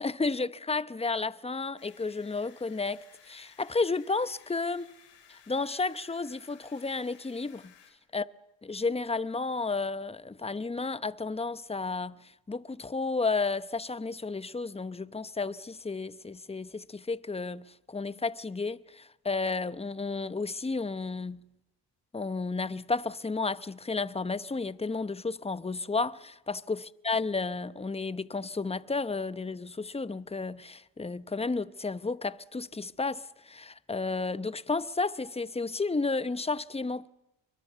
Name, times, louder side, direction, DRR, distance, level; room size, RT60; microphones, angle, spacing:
voice 1, 0.0-4.9 5.3-7.7 8.1-8.2 8.6-12.2 12.5-21.4 22.1-37.1, left 3 dB, 15° left, 0.9 m, -32 dB
sound 1, 1.8-7.9, left 8 dB, 70° left, 7.2 m, -58 dB
29.5 x 24.0 x 6.9 m
cardioid pair, 95°, 44 cm